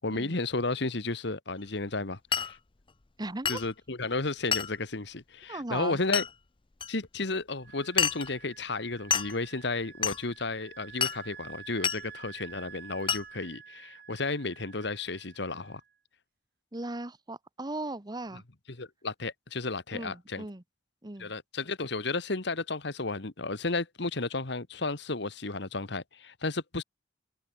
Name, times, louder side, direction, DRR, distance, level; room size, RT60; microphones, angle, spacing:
voice 1, 0.0-2.6 3.5-6.2 6.9-15.8 18.8-20.5 21.2-26.8, left 3 dB, 65° left, 1.7 m, -33 dB
Glass, 2.3-2.6 3.5-3.7 4.5-4.8 6.1-6.3 6.8-6.9 8.0-8.3 9.1-9.4 10.0-10.2 11.0-11.2 11.8-12.0 13.1-13.3, left 7 dB, 30° left, 0.6 m, -28 dB
voice 2, 3.2-3.6 5.5-6.0 16.7-18.4 19.9-20.6 21.0-21.3, right 2 dB, 20° right, 1.1 m, -38 dB
Wind instrument woodwind instrument, 7.6-15.9, right 8 dB, 60° right, 2.7 m, -50 dB
head